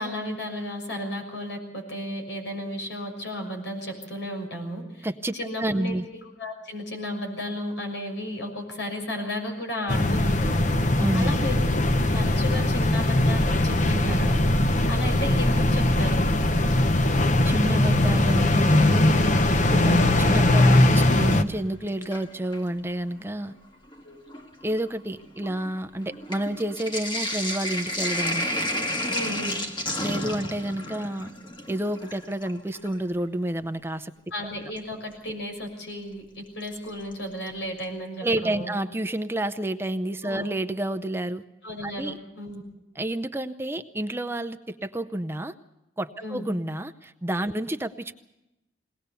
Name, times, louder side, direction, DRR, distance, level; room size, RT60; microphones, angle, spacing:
voice 1, 0.0-5.1 5.3-6.0 6.4-10.7 11.1-11.7 12.1-14.4 14.9-16.3 24.0-24.2 29.1-29.6 34.3-38.7 40.2-40.5 41.6-42.6 46.2-46.4, left 1 dB, 85° left, 4 dB, 6.4 m, -34 dB
voice 2, 5.0-6.0 11.0-11.3 17.5-19.2 19.7-23.5 24.6-28.5 30.0-31.3 31.7-34.1 38.2-41.4 41.8-42.2 42.9-45.5 46.0-48.1, right 1 dB, 15° right, 10 dB, 0.6 m, -29 dB
sound 1, 9.9-21.4, left 1 dB, 45° left, 0.9 m, -21 dB
sound 2, 10.0-20.6, right 1 dB, 55° right, 0.8 m, -33 dB
Sink (filling or washing), 19.5-21.5 21.9-22.7 23.5-23.6 23.9-33.0 34.8-34.9 36.7-37.1 37.5-37.6 37.8-37.9, left 1 dB, 25° left, 1.7 m, -32 dB
21.5 x 18.5 x 6.8 m, 0.92 s
head